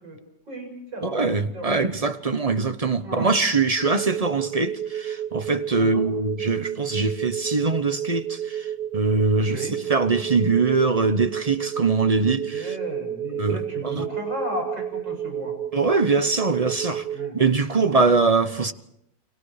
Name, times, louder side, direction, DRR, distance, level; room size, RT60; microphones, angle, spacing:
voice 1, 0.0-1.9 3.0-3.3 5.8-6.1 9.4-9.8 11.8-15.5 17.1-17.4, equal, 85° right, 7.8 m, -35 dB
voice 2, 1.0-12.7 13.4-14.0 15.7-17.0 17.3-18.7, right 4 dB, 30° right, 0.7 m, -23 dB
sound 1, 3.8-17.3, right 10 dB, 45° right, 2.8 m, -31 dB
30.0 x 25.5 x 5.0 m
omnidirectional pair, 1.9 m